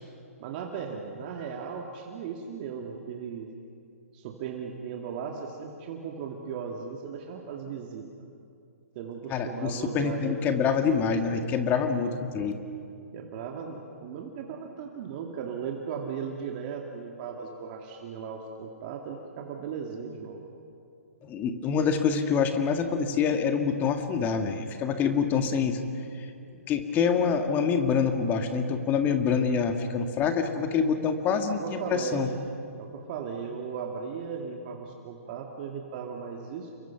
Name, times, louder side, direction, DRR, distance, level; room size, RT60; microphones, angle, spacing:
voice 1, 0.4-3.5 4.1-8.1 9.0-10.6 13.1-20.4 25.5-25.9 31.5-32.4 32.8-36.7, right 6 dB, 40° right, 2 dB, 2.3 m, -37 dB
voice 2, 9.3-12.5 21.2-25.8 26.2-26.3 26.7-32.3, left 6 dB, 20° left, 6 dB, 2.0 m, -26 dB
29.5 x 23.5 x 6.0 m, 2.6 s
hypercardioid pair, 135°, 8 cm